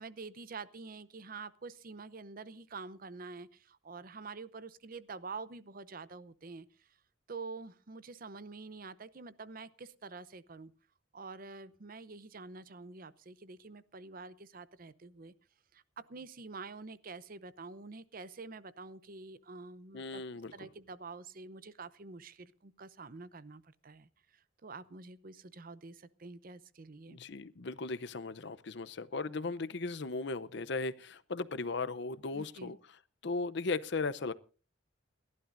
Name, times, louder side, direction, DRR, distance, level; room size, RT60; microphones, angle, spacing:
voice 1, 0.0-6.9 7.3-10.7 11.1-15.3 15.7-20.2 20.5-27.2 32.3-32.7, right 4 dB, 50° right, 0.7 m, -47 dB
voice 2, 19.9-20.5 27.1-32.8 33.2-34.3, left 3 dB, 60° left, 0.7 m, -37 dB
29.5 x 12.0 x 2.6 m
head